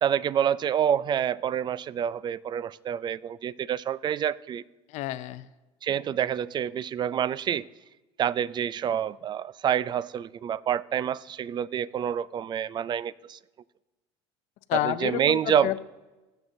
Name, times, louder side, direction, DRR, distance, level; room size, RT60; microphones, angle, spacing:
voice 1, 0.0-4.6 5.8-7.7 8.2-13.4 14.7-15.8, right 9 dB, 35° right, 0.4 m, -27 dB
voice 2, 4.9-5.5 14.7-15.8, left 15 dB, 60° left, 0.5 m, -29 dB
20.0 x 7.9 x 2.6 m
supercardioid pair, 90°, 13 cm